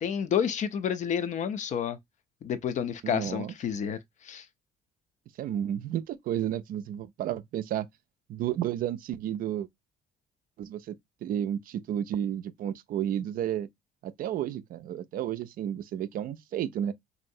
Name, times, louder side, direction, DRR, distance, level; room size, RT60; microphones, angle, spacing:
voice 1, 0.0-2.0 2.4-4.0 4.2-4.4, left 8 dB, 45° left, 0.4 m, -29 dB
voice 2, 3.0-3.5 5.4-7.9 8.3-9.7 10.6-13.7 14.0-16.9, right 10 dB, 55° right, 0.4 m, -32 dB
3.0 x 2.6 x 2.7 m
cardioid pair, 110°, 17 cm